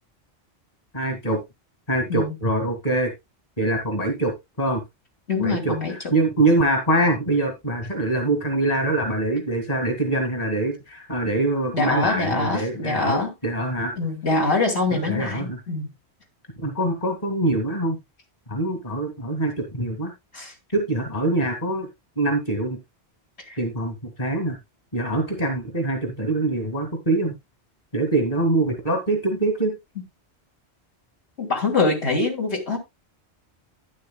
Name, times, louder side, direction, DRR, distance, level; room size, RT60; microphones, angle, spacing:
voice 1, 0.9-1.4 1.9-3.1 3.6-4.8 5.4-13.9 14.9-15.6 16.6-18.0 18.5-20.1 20.7-21.9 22.2-22.8 23.6-24.6 24.9-27.3 27.9-29.8, right 2 dB, 35° left, 2.3 m, -24 dB
voice 2, 5.3-6.1 11.7-13.3 14.0-15.9 20.3-20.5 23.5-23.6 31.4-32.8, left 3 dB, 75° left, 2.8 m, -24 dB
11.5 x 10.0 x 2.3 m
omnidirectional pair, 1.1 m